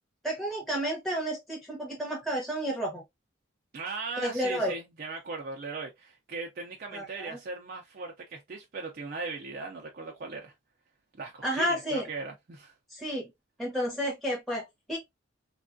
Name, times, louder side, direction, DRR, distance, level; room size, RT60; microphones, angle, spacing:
voice 1, 0.2-3.0 4.2-4.8 6.9-7.4 11.4-12.1 12.9-13.3 13.6-15.0, equal, ahead, 0.8 m, -31 dB
voice 2, 3.7-10.5 11.2-12.8, right 4 dB, 50° right, 0.4 m, -38 dB
3.3 x 2.3 x 2.5 m
head